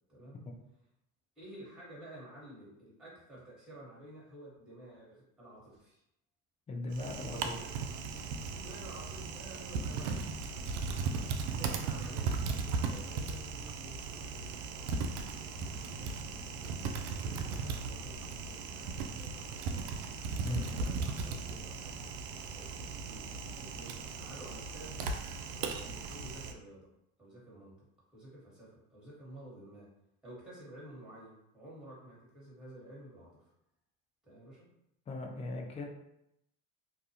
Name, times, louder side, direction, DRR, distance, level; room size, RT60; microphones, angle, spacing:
voice 1, 0.1-0.4 1.4-6.0 7.3-7.7 8.4-10.5 11.0-12.3 12.5-16.8 17.2-19.9 20.4-22.1 22.5-25.0 25.5-26.9 27.2-27.7 28.1-29.9 30.2-33.5 34.2-34.7, right 1 dB, ahead, -7 dB, 1.4 m, -52 dB
voice 2, 6.7-7.5 20.4-20.7 35.1-35.8, left 2 dB, 15° left, 2 dB, 0.4 m, -38 dB
Typing, 6.9-26.5, right 4 dB, 75° right, 0.5 m, -37 dB
2.3 x 2.3 x 2.8 m, 0.81 s
hypercardioid pair, 80°, 39 cm